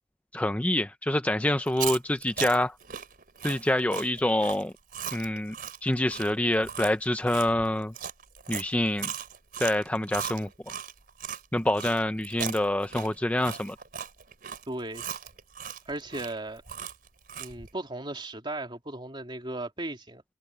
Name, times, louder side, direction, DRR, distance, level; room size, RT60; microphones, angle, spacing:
voice 1, 0.3-2.8 3.4-4.7 5.1-5.6 5.8-7.9 8.5-9.1 9.6-10.5 11.5-13.8, left 1 dB, 10° left, 0.5 m, -26 dB
Chewing mastication, 1.6-11.4 11.8-17.7, right 8 dB, 55° right, 4.2 m, -38 dB
voice 2, 14.7-15.1 15.8-16.6 17.4-20.2, right 2 dB, 30° right, 3.0 m, -36 dB
head